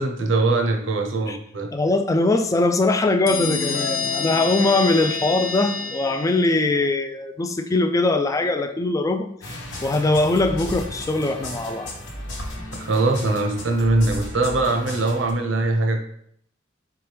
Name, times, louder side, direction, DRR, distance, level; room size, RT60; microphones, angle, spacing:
voice 1, 0.0-1.7 12.6-16.0, right 2 dB, 70° right, 3 dB, 0.7 m, -22 dB
voice 2, 1.7-11.9, left 2 dB, 15° left, 7 dB, 0.3 m, -21 dB
sound 1, 3.3-6.8, left 4 dB, 85° left, 0.5 m, -28 dB
sound 2, 9.4-15.3, left 1 dB, 70° left, 1.1 m, -34 dB
4.5 x 3.5 x 3.3 m, 0.69 s
head